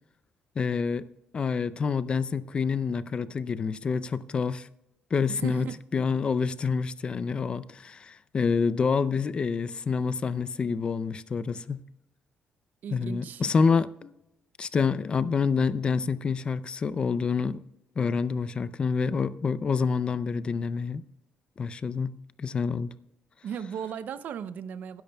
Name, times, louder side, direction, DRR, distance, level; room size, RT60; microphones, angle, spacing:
voice 1, 0.6-1.1 1.3-4.7 5.1-11.8 12.9-14.1 14.6-17.6 18.0-21.0 21.6-22.1 22.4-22.9, left 5 dB, 30° left, 0.4 m, -27 dB
voice 2, 5.3-5.8 12.8-13.4 23.4-25.0, right 8 dB, 60° right, 0.5 m, -36 dB
19.0 x 10.5 x 2.3 m
cardioid pair, 150°, 3 cm